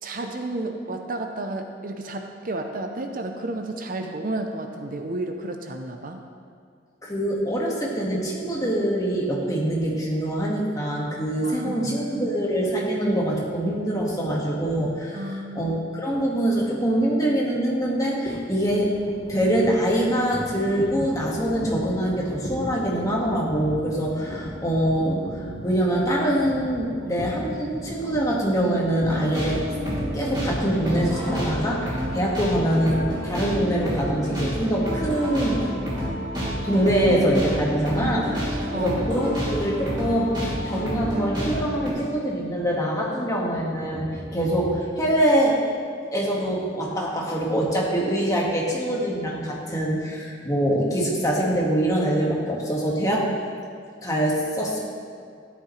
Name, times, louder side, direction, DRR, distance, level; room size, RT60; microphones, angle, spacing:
voice 1, 0.0-6.2 11.4-12.3 15.1-15.8 37.9-39.3, right 2 dB, 45° right, 5 dB, 0.6 m, -32 dB
voice 2, 7.0-18.9 19.3-25.2 25.6-29.6 30.1-35.6 36.6-38.2 38.7-45.6 46.1-53.3 54.0-54.8, right 1 dB, 20° left, -3 dB, 1.8 m, -24 dB
sound 1, 18.2-32.3, equal, 85° left, 2.4 m, -37 dB
sound 2, 29.0-41.9, equal, 25° right, 2.8 m, -29 dB
13.5 x 11.0 x 3.2 m, 2.3 s
head